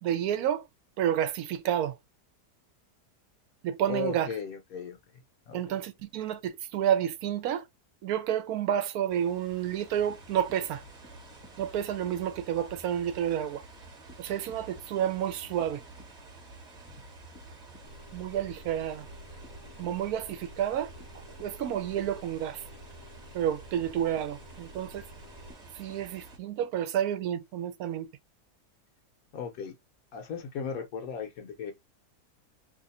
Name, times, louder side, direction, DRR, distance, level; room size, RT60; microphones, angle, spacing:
voice 1, 0.0-0.6 1.0-2.0 3.6-4.3 5.5-7.6 8.0-10.8 11.6-13.6 14.2-15.8 18.1-19.1 19.8-22.6 23.3-25.0 25.8-28.1, right 10 dB, 70° right, 1.0 m, -30 dB
voice 2, 3.9-5.0 5.5-5.8 29.3-29.7 30.1-31.7, left 6 dB, 70° left, 1.0 m, -36 dB
sound 1, 9.1-26.4, right 2 dB, 35° right, 1.0 m, -49 dB
sound 2, 17.8-25.5, left 1 dB, 50° left, 0.4 m, -52 dB
2.8 x 2.4 x 4.0 m
omnidirectional pair, 1.7 m